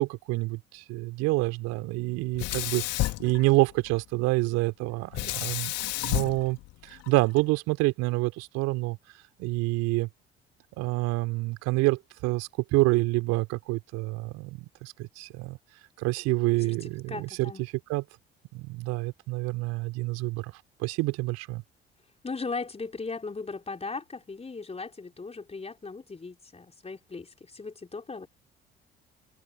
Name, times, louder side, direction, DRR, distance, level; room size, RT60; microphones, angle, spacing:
voice 1, 0.0-6.6 6.8-9.0 9.4-10.1 10.8-15.6 16.0-17.5 17.9-18.0 18.5-20.5 20.8-21.6, right 22 dB, 60° right, 3.6 m, -27 dB
Sink (filling or washing), 2.3-4.0 5.1-7.4, left 18 dB, 55° left, 3.4 m, -31 dB
voice 2, 16.6-17.6 22.2-28.3, left 4 dB, 20° left, 4.3 m, -38 dB
figure-of-eight pair, 55°, 29 cm